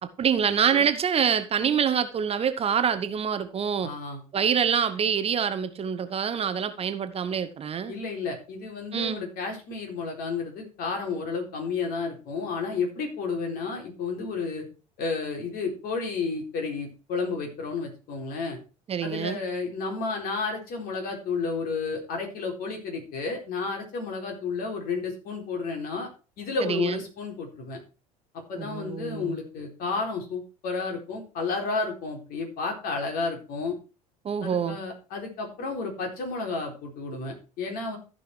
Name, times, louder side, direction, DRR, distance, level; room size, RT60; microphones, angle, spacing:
voice 1, 0.0-3.9 4.3-7.9 8.9-9.2 18.9-19.4 26.6-27.0 28.6-29.4 34.2-34.8, right 7 dB, 30° right, 0.9 m, -26 dB
voice 2, 3.8-4.2 7.9-14.6 15.0-18.6 19.0-26.1 26.4-27.8 28.5-33.8 34.4-38.0, left 4 dB, 50° left, 4.0 m, -31 dB
14.5 x 5.5 x 4.7 m
figure-of-eight pair, 70°, 19 cm